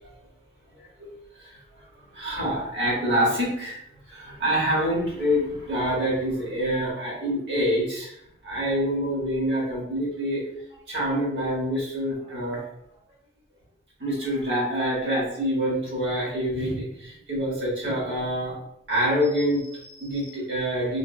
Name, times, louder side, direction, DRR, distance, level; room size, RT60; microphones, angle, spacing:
voice 1, 2.1-3.8 4.1-8.1 8.4-10.4 10.9-12.6 14.0-18.6 18.9-21.0, equal, 60° right, -4 dB, 1.2 m, -26 dB
3.3 x 2.1 x 2.4 m, 0.75 s
head